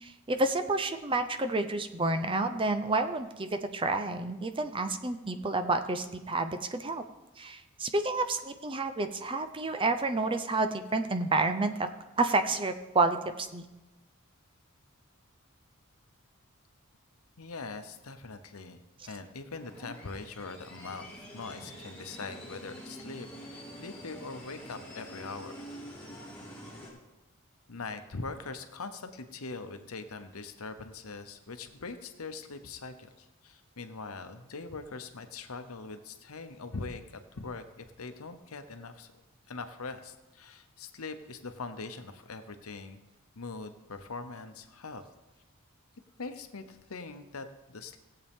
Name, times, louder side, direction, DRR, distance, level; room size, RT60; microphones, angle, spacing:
voice 1, 0.0-7.0 7.4-11.9 12.2-13.6, right 2 dB, 25° right, 9 dB, 0.6 m, -29 dB
voice 2, 17.4-18.8 19.1-25.5 26.9-27.0 27.7-39.2 39.5-43.0 43.3-45.1 46.2-48.0, left 3 dB, 80° left, 8 dB, 0.9 m, -42 dB
sound 1, 19.5-26.9, equal, 5° left, 2.8 m, -46 dB
17.5 x 7.8 x 3.6 m, 1.0 s
head